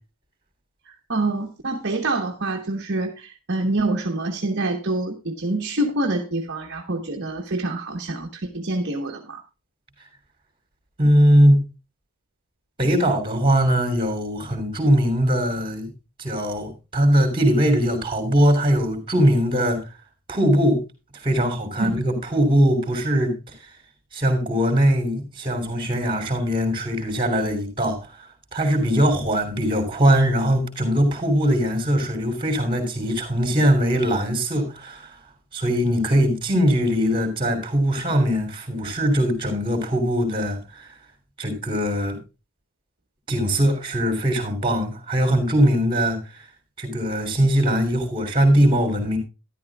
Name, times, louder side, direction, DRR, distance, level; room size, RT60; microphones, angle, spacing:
voice 1, 1.1-9.4 21.8-22.0, right 2 dB, 50° right, 1.2 m, -26 dB
voice 2, 11.0-11.6 12.8-15.9 16.2-19.8 20.3-20.8 21.2-23.4 24.1-28.1 28.5-35.1 35.5-40.9 41.4-42.2 43.3-46.2 46.8-49.2, equal, 25° right, 3.1 m, -21 dB
12.5 x 11.5 x 2.3 m
head